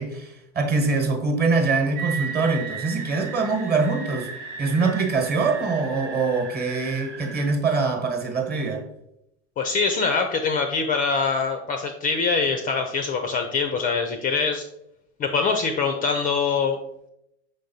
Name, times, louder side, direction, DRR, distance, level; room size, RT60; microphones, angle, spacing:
voice 1, 0.0-4.3 4.6-8.8, right 4 dB, 30° right, 1.1 m, -24 dB
sound 1, 1.9-7.5, right 5 dB, 90° right, 1.1 m, -36 dB
voice 2, 9.6-14.6 15.2-16.8, left 5 dB, 25° left, 0.4 m, -24 dB
5.3 x 3.7 x 2.7 m
hypercardioid pair, 95°, 34 cm